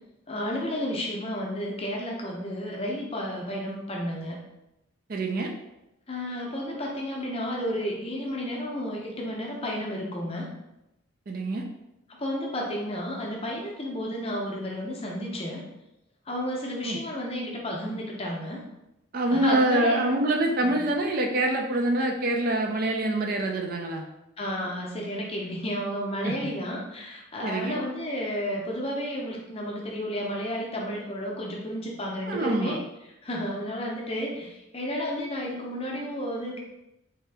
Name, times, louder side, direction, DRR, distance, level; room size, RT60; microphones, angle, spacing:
voice 1, 0.3-4.4 6.1-10.5 12.2-15.6 16.3-18.6 19.3-20.2 20.6-20.8 24.4-32.8 33.2-36.6, equal, 30° left, -1 dB, 0.6 m, -32 dB
voice 2, 5.1-5.5 11.3-11.6 16.8-17.0 19.1-24.0 26.2-26.5 27.4-27.8 32.3-32.8, right 1 dB, 45° right, 2 dB, 0.4 m, -25 dB
3.4 x 2.8 x 3.3 m, 0.91 s
head